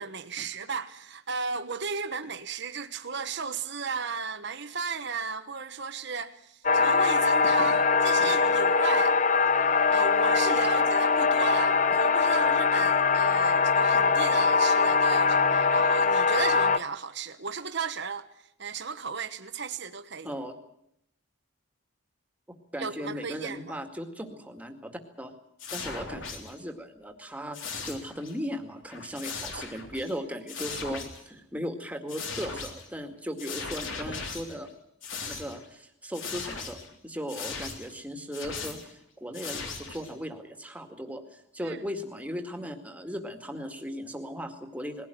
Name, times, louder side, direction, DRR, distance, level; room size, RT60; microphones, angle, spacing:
voice 1, 0.0-9.2 9.7-18.3 18.6-20.3 22.8-23.8 41.6-41.8, right 5 dB, 55° right, 1.2 m, -34 dB
sound 1, 6.6-16.8, left 5 dB, 35° left, 0.8 m, -22 dB
voice 2, 20.2-20.5 22.7-24.9 25.2-25.3 25.7-34.7 35.3-36.8 37.0-45.1, equal, 5° right, 2.1 m, -37 dB
sound 2, 25.6-26.6 27.5-28.4 28.7-30.2 30.5-31.2 32.1-32.9 33.4-34.7 35.0-35.7 36.1-36.9 37.3-37.9 38.3-38.9 39.3-40.1, left 4 dB, 65° left, 3.6 m, -38 dB
21.0 x 17.0 x 9.2 m
head